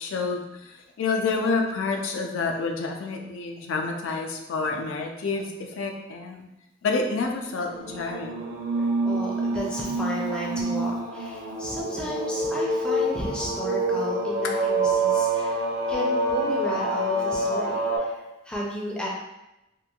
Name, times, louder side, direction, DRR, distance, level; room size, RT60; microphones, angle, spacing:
voice 1, 0.0-6.4 6.8-8.4, left 4 dB, 75° left, 2 dB, 0.4 m, -28 dB
sound 1, 7.7-18.0, right 2 dB, 50° right, 0.6 m, -27 dB
voice 2, 8.7-15.6 15.9-18.2 18.4-19.1, equal, 5° left, -4 dB, 0.4 m, -33 dB
3.0 x 2.5 x 2.3 m, 0.94 s
head